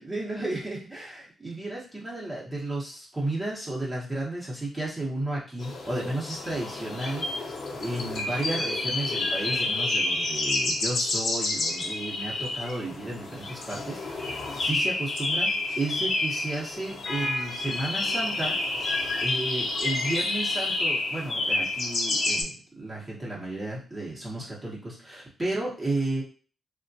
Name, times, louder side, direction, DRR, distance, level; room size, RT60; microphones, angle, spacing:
voice 1, 0.0-7.2 7.7-15.5 15.8-18.5 19.2-26.2, right 2 dB, 20° right, -5 dB, 0.8 m, -33 dB
sound 1, 5.6-22.4, left 2 dB, 55° left, 0.7 m, -29 dB
3.4 x 2.2 x 2.6 m, 0.39 s
wide cardioid pair, 145°, 0 cm